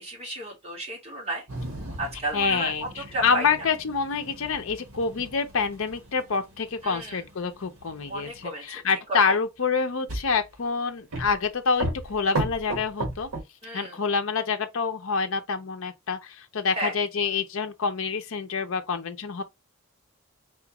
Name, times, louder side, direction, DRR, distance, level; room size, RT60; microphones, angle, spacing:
voice 1, 0.0-1.4 2.0-3.5 6.8-7.2 8.1-8.8 9.3-9.4 13.6-14.0 16.7-16.9, right 1 dB, 30° right, 1.7 m, -33 dB
sound 1, 1.5-8.4 10.1-10.6 11.1-11.5 11.8-13.4, right 2 dB, 75° right, 1.3 m, -36 dB
voice 2, 2.3-13.3 13.7-19.4, left 5 dB, 70° left, 0.6 m, -27 dB
4.2 x 2.5 x 2.9 m
head